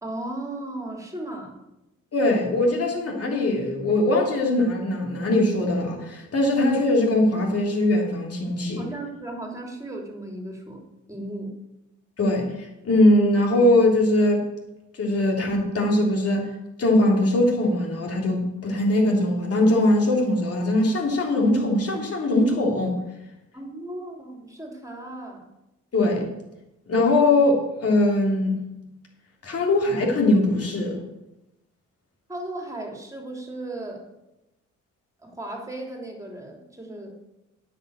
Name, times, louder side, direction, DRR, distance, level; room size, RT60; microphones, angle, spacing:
voice 1, 0.0-1.6 8.8-10.8 11.1-11.5 23.5-25.5 32.3-34.1 35.2-37.2, right 1 dB, 10° right, 1 dB, 3.1 m, -36 dB
voice 2, 2.1-8.8 12.2-14.4 14.9-16.5 16.8-23.0 25.9-26.3 26.9-28.6 29.4-31.0, left 1 dB, 50° left, 0 dB, 3.3 m, -21 dB
9.6 x 6.0 x 8.1 m, 0.92 s
cardioid pair, 80°, 30 cm